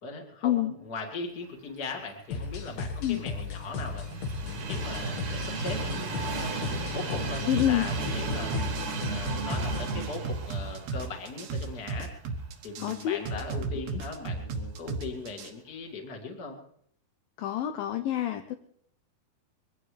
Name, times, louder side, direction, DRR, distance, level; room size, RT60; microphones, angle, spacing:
voice 1, 0.0-4.0 4.4-6.4 6.9-12.1 12.6-16.6, left 3 dB, 30° left, 3 dB, 2.0 m, -39 dB
sound 1, 2.3-10.0, left 4 dB, 60° left, 2.7 m, -36 dB
Train, 2.4-12.5 12.9-13.0 14.1-14.2, right 4 dB, 55° right, 2.5 m, -36 dB
voice 2, 7.5-7.8 12.8-13.2 17.4-18.6, left 12 dB, 75° left, 6 dB, 2.2 m, -27 dB
sound 2, 7.5-15.5, right 4 dB, 70° right, 3.2 m, -34 dB
23.0 x 17.0 x 3.3 m, 0.66 s
omnidirectional pair, 4.6 m